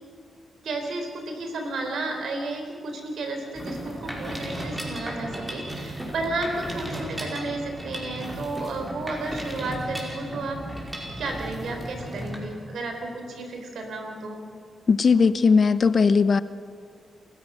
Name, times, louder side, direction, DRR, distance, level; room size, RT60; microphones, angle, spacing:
voice 1, 0.6-10.6 11.2-14.4, right 2 dB, 80° right, 4 dB, 3.9 m, -32 dB
Mechanisms, 3.5-12.4, right 1 dB, 15° right, 5.3 m, -35 dB
voice 2, 14.9-16.4, left 5 dB, 50° left, 14 dB, 0.7 m, -18 dB
28.0 x 15.0 x 6.3 m, 2.3 s
cardioid pair, 75°, 0 cm